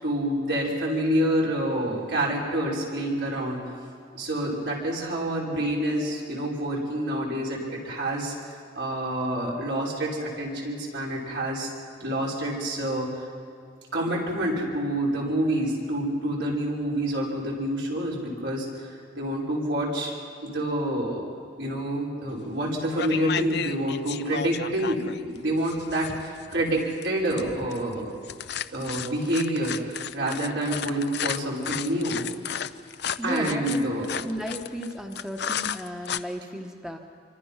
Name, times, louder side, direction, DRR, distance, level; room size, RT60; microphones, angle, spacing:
voice 1, 0.0-3.6 4.1-11.7 12.0-13.2 13.9-20.1 20.4-21.3 21.6-28.1 28.7-32.3 33.2-34.2, right 1 dB, 70° right, -4 dB, 5.8 m, -28 dB
sound 1, 22.4-22.6 23.0-36.2, left 8 dB, 65° left, 0.6 m, -34 dB
voice 2, 33.2-33.9 34.2-37.0, equal, 5° right, 2 dB, 1.3 m, -34 dB
26.5 x 24.5 x 5.8 m, 2.4 s
head